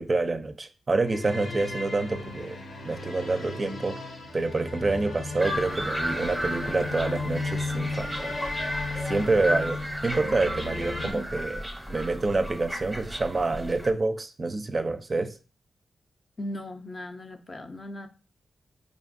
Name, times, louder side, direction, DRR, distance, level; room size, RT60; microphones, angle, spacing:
voice 1, 0.0-2.6 2.8-4.0 4.3-8.3 9.1-11.6 11.9-15.4, right 3 dB, 40° right, 0.4 m, -27 dB
sound 1, 1.1-11.1, left 3 dB, 85° left, 0.9 m, -35 dB
sound 2, 5.4-13.9, equal, ahead, 0.7 m, -34 dB
voice 2, 16.4-18.1, left 1 dB, 40° left, 0.5 m, -37 dB
5.1 x 2.5 x 2.5 m
cardioid pair, 65°, 0 cm